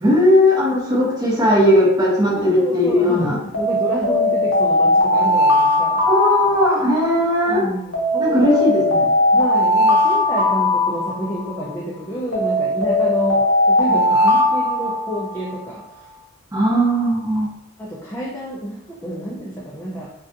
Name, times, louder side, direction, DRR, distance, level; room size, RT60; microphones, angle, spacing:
voice 1, 0.0-3.4 6.0-7.7 8.2-9.1 16.5-17.5, equal, 15° right, -6 dB, 0.7 m, -17 dB
voice 2, 2.3-6.1 7.5-8.7 9.3-16.1 17.8-20.1, equal, 10° left, -6 dB, 0.3 m, -29 dB
Alarm, 3.5-7.2 7.9-11.6 12.3-15.5, left 1 dB, 70° left, 0.6 m, -18 dB
2.4 x 2.2 x 2.5 m, 0.82 s
head